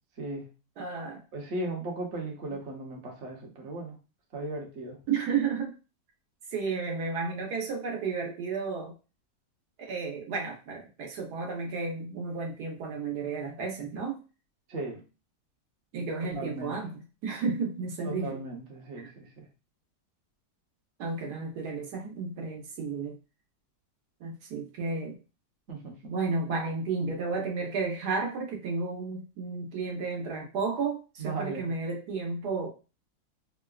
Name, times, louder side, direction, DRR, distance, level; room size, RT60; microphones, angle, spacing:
voice 1, 0.2-0.5 1.3-4.0 4.3-5.0 14.7-15.0 16.2-16.8 18.0-19.5 25.7-26.1 31.2-31.7, right 2 dB, 50° right, -1 dB, 1.1 m, -37 dB
voice 2, 0.8-1.2 5.1-5.8 6.5-8.9 9.8-14.2 15.9-18.3 21.0-23.2 24.2-25.2 26.0-32.7, right 4 dB, 80° right, 0 dB, 1.4 m, -32 dB
4.5 x 2.1 x 2.3 m, 0.32 s
omnidirectional pair, 1.7 m